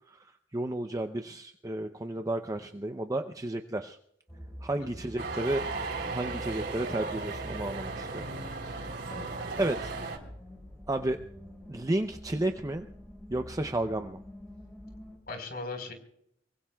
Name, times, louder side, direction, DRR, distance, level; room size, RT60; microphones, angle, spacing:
voice 1, 0.5-4.0 4.6-5.6 6.1-8.3 8.7-9.1 9.6-9.9 10.9-11.2 11.7-12.9 13.3-14.2, right 1 dB, 20° right, 6 dB, 0.6 m, -32 dB
sound 1, 4.3-15.2, equal, 5° left, 5.1 m, -46 dB
sound 2, 5.2-10.2, right 3 dB, 60° right, 3.5 m, -36 dB
voice 2, 9.1-9.5 15.3-15.9, left 3 dB, 55° left, 5 dB, 4.3 m, -39 dB
25.0 x 23.5 x 2.3 m, 0.70 s
head